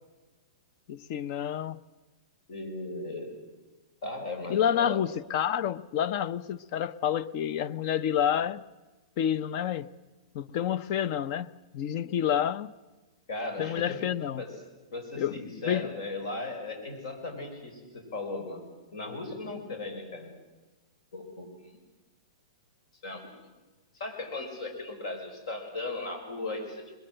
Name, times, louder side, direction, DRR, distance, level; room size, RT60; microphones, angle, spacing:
voice 1, 0.9-1.8 4.5-8.6 9.2-9.9 10.3-11.5 11.7-12.7 13.6-14.4 15.2-15.4 15.7-15.9, left 9 dB, 40° left, 0.7 m, -28 dB
voice 2, 2.5-3.4 4.0-5.0 13.3-14.1 14.4-14.6 14.9-18.6 18.9-20.3 21.1-21.5 23.0-23.3 23.9-26.8, left 2 dB, 65° left, 5.7 m, -37 dB
21.5 x 21.5 x 7.8 m
hypercardioid pair, 150°, 3 cm